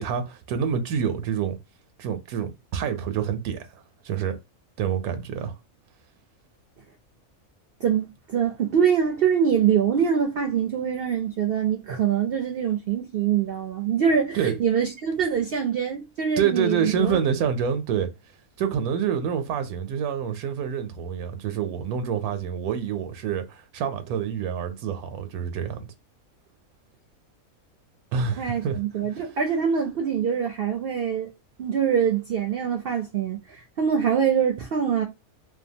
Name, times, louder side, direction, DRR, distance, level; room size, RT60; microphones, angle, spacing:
voice 1, 0.0-1.6 2.0-4.4 4.8-5.5 14.3-14.6 16.4-18.1 18.6-25.9 28.1-28.8 29.1-29.3, right 7 dB, 90° right, 1.1 m, -27 dB
voice 2, 7.8-17.2 28.4-31.3 31.6-35.0, right 7 dB, 70° right, 0.5 m, -24 dB
2.8 x 2.2 x 2.6 m
omnidirectional pair, 1.5 m